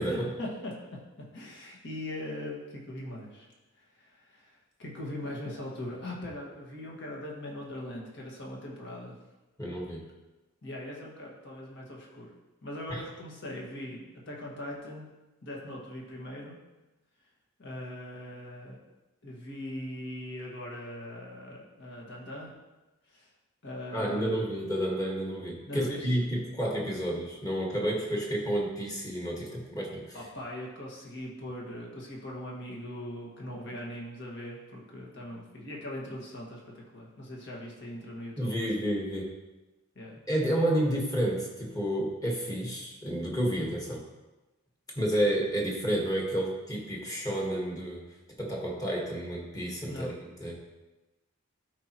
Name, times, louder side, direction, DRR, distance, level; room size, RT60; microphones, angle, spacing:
voice 1, 0.1-3.5 3.8-9.2 10.6-12.3 12.6-15.1 15.4-16.6 17.6-18.8 19.2-22.5 23.1-23.3 23.6-24.4 25.6-26.1 30.1-38.9 40.0-40.2 49.8-50.1, left 1 dB, 55° left, -3 dB, 1.9 m, -40 dB
voice 2, 9.6-10.0 12.9-13.0 23.9-30.2 38.4-39.3 40.3-44.0 44.9-48.0 48.4-50.6, right 1 dB, 15° left, -2 dB, 1.6 m, -30 dB
13.0 x 5.0 x 3.0 m, 1.1 s
head